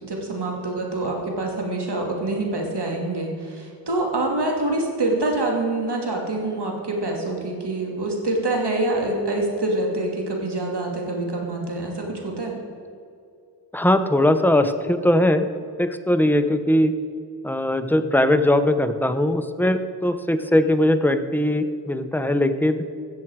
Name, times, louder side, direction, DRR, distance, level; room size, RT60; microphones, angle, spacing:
voice 1, 0.0-12.6, right 2 dB, 65° right, 0 dB, 2.5 m, -26 dB
voice 2, 13.7-16.9 17.4-22.8, left 1 dB, 5° left, 9 dB, 0.8 m, -20 dB
14.5 x 7.6 x 4.7 m, 2.5 s
cardioid pair, 45°, 43 cm